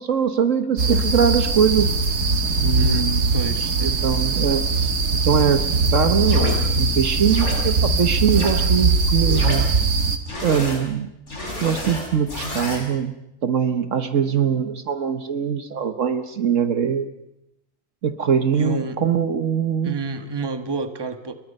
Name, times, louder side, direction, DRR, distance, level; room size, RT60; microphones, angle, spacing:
voice 1, 0.0-1.9 2.6-3.2 3.8-4.6 5.2-5.6 5.9-9.7 10.4-11.1 11.6-13.1 13.4-17.1 18.0-20.0, right 7 dB, 60° right, 9 dB, 1.4 m, -22 dB
sound 1, 0.8-10.2, right 3 dB, 90° right, 2.1 m, -21 dB
voice 2, 2.8-4.0 18.5-19.0 19.8-21.3, right 3 dB, 15° right, 8 dB, 1.3 m, -29 dB
sound 2, 6.2-6.6 7.3-7.6 8.3-8.5 9.3-9.6 10.3-10.8 11.3-12.8, left 1 dB, 50° left, 5.7 m, -30 dB
30.0 x 22.0 x 5.4 m, 0.82 s
omnidirectional pair, 1.6 m